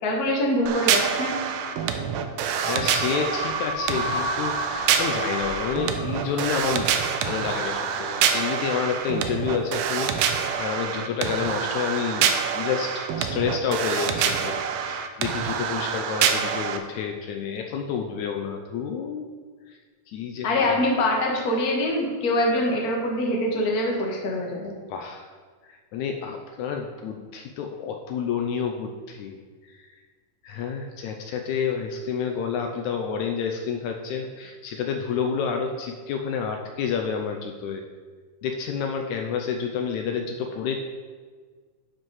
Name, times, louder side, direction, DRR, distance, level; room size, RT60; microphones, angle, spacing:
voice 1, 0.0-1.3 20.4-24.7, left 1 dB, 45° left, -1 dB, 1.3 m, -24 dB
sound 1, 0.7-16.8, right 7 dB, 80° right, 1.6 m, -26 dB
sound 2, 2.5-8.9, left 1 dB, 15° right, 1.5 m, -34 dB
voice 2, 2.7-19.3 19.7-19.8 20.1-20.8 24.9-25.3 25.7-29.4 29.7-30.0 30.4-37.9 38.4-40.8, left 6 dB, 80° left, 3 dB, 1.9 m, -29 dB
11.5 x 5.1 x 4.7 m, 1.5 s
omnidirectional pair, 3.6 m